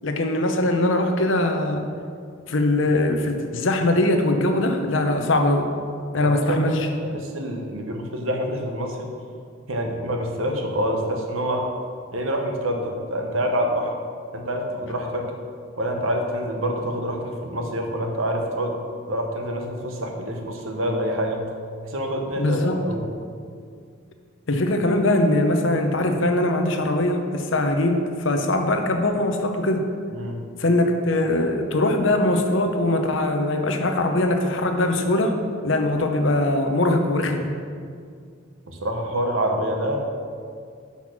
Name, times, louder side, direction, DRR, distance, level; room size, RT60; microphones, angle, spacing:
voice 1, 0.0-1.8 2.5-5.7 6.1-6.9 22.4-22.8 24.5-29.9 30.6-35.3 35.6-37.5, left 1 dB, 70° left, 5 dB, 0.8 m, -21 dB
voice 2, 6.2-6.6 7.0-9.1 9.7-11.7 12.1-13.9 14.3-15.3 15.8-18.8 19.1-21.4 21.9-23.1 30.1-30.4 38.7-40.1, equal, 80° right, 2 dB, 1.1 m, -26 dB
6.3 x 5.6 x 6.1 m, 2.2 s
head